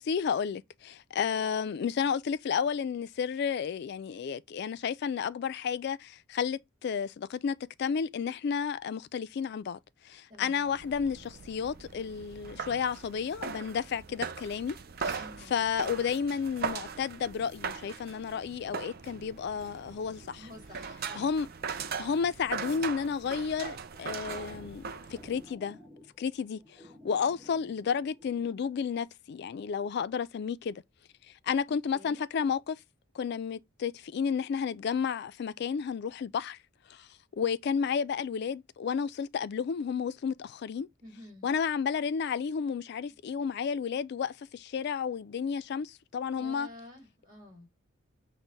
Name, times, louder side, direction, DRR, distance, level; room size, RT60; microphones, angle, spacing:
voice 1, 0.0-9.8 10.0-15.2 15.5-20.5 21.1-21.5 22.0-24.8 25.1-25.8 26.2-30.8 31.4-32.8 33.1-36.6 36.9-37.1 37.3-40.9 41.4-46.7, left 6 dB, 55° left, 0.3 m, -32 dB
voice 2, 10.3-10.6 15.2-15.6 20.4-21.3 31.9-32.2 41.0-41.5 46.3-47.7, left 1 dB, 20° right, 2.5 m, -49 dB
sound 1, 10.6-25.5, right 5 dB, 50° right, 0.5 m, -40 dB
sound 2, 23.7-28.7, left 1 dB, ahead, 0.8 m, -54 dB
6.2 x 2.1 x 3.9 m
head